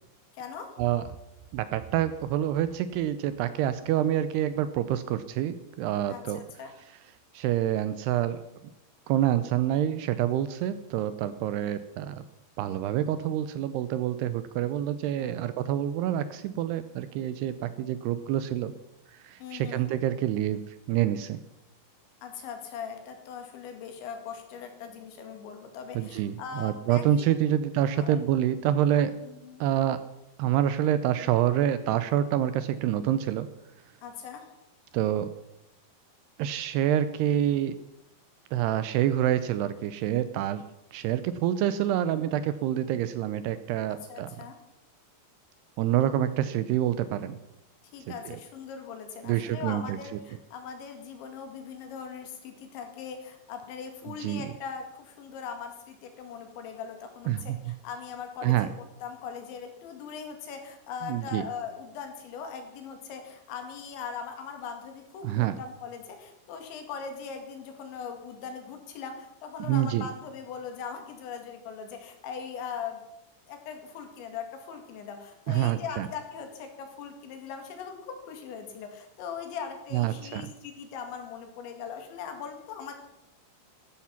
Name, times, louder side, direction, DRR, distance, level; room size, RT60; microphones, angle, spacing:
voice 1, 0.3-0.7 6.1-6.7 15.2-15.6 19.4-19.9 22.2-27.6 27.9-28.3 29.2-29.6 34.0-34.5 43.9-44.6 47.9-73.1 73.5-82.9, left 6 dB, 80° left, 5 dB, 4.4 m, -40 dB
voice 2, 1.5-6.4 7.3-8.4 9.1-12.2 12.6-18.7 19.1-21.4 26.0-29.1 29.6-30.0 30.4-33.5 34.9-35.3 36.4-37.7 38.5-40.6 40.9-44.3 45.8-47.4 48.1-48.2 49.2-50.0 54.1-54.5 57.3-57.7 58.4-58.7 61.0-61.4 65.2-65.5 69.6-70.1 75.5-76.1 79.9-80.5, right 11 dB, 80° right, 12 dB, 2.5 m, -27 dB
14.5 x 13.0 x 5.8 m, 0.85 s
omnidirectional pair, 5.2 m